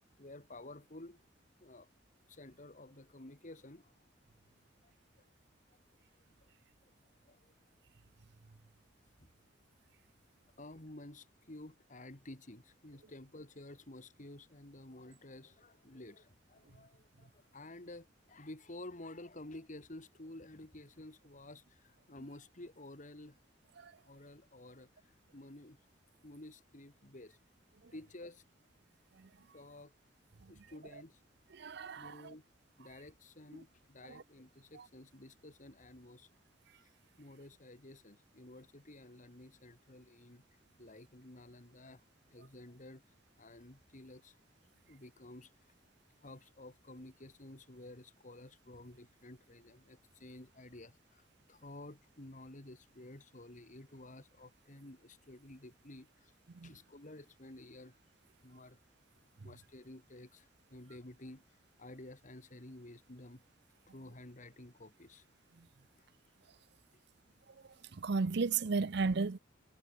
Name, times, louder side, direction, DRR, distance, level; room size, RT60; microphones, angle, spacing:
voice 1, 0.2-1.2 1.6-1.9 2.3-3.9 4.8-4.9 5.2-5.3 5.7-5.8 6.4-6.5 6.8-6.9 7.2-7.5 9.2-9.3 10.5-23.4 24.0-24.9 25.3-25.8 26.2-27.4 27.9-28.6 29.5-29.9 30.5-31.2 31.9-32.5 32.8-36.3 36.8-40.4 40.8-43.0 43.4-44.4 44.9-45.5 46.2-56.3 56.6-58.0 58.4-58.8 59.4-63.4 63.9-65.3 66.0-66.1, left 1 dB, 45° left, 2.4 m, -52 dB
voice 2, 31.5-32.3 34.1-34.2 34.7-34.9 56.5-56.7 65.6-65.7 67.9-69.4, right 4 dB, 65° right, 0.6 m, -35 dB
head